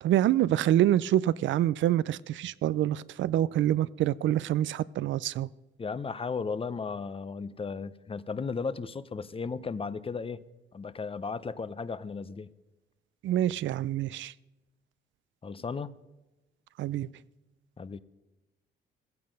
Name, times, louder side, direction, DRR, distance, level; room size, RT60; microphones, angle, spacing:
voice 1, 0.0-5.5 13.2-14.3 16.8-17.1, right 12 dB, 70° right, 0.5 m, -26 dB
voice 2, 5.8-10.4 10.7-12.5 15.4-15.9 17.8-18.0, left 5 dB, 30° left, 0.7 m, -35 dB
15.5 x 15.0 x 5.3 m
cardioid pair, 90°, 20 cm